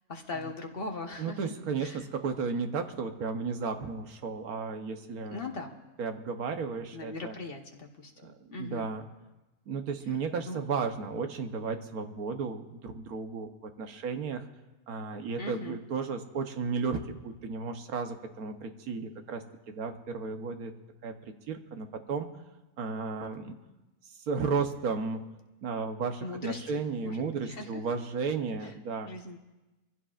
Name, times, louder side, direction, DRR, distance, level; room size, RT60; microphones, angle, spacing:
voice 1, 0.1-1.5 1.8-2.0 5.3-5.7 6.9-8.9 10.5-10.6 15.4-15.8 26.2-26.6 27.0-27.8 28.6-28.7 29.0-29.4, left 3 dB, 40° left, 3 dB, 1.3 m, -40 dB
voice 2, 1.2-5.5 6.0-7.3 8.2-9.1 9.7-14.4 14.9-20.7 21.0-22.3 22.8-23.5 24.3-25.2 25.6-29.1, right 5 dB, 80° right, 6 dB, 1.5 m, -34 dB
24.5 x 15.5 x 2.5 m, 1.1 s
omnidirectional pair, 1.5 m